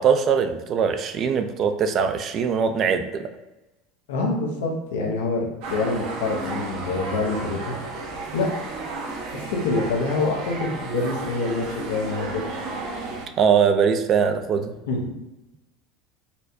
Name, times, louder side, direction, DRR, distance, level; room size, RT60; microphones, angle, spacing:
voice 1, 0.0-3.2 13.4-14.7, right 6 dB, 45° right, 7 dB, 0.4 m, -21 dB
voice 2, 4.1-7.8 8.3-8.5 9.3-12.4 14.9-15.0, left 3 dB, 85° left, 0 dB, 0.7 m, -26 dB
sound 1, 5.6-13.3, right 3 dB, 70° right, 0.8 m, -33 dB
4.2 x 2.2 x 2.7 m, 1.0 s
supercardioid pair, 100°, 0 cm